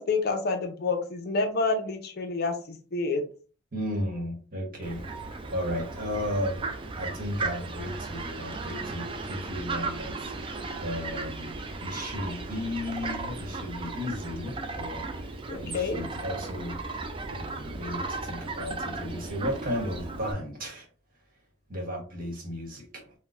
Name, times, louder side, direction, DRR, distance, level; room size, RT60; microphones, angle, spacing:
voice 1, 0.0-3.2 15.5-16.0, left 3 dB, 50° left, 6 dB, 0.5 m, -28 dB
voice 2, 3.7-6.6 6.9-11.5 11.8-17.0 17.3-20.9 21.7-23.1, left 1 dB, 45° right, 0 dB, 1.1 m, -35 dB
Fowl, 4.8-20.3, right 3 dB, 25° right, 0.3 m, -36 dB
4.0 x 2.1 x 2.4 m, 0.39 s
head